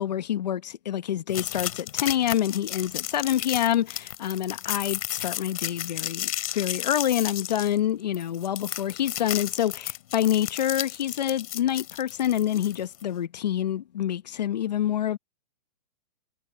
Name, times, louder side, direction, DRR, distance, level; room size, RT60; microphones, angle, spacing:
voice 1, 0.0-15.2, left 11 dB, 80° left, 1.4 m, -27 dB
sound 1, 1.3-13.0, left 13 dB, 55° left, 2.8 m, -33 dB
hypercardioid pair, 165°, 21 cm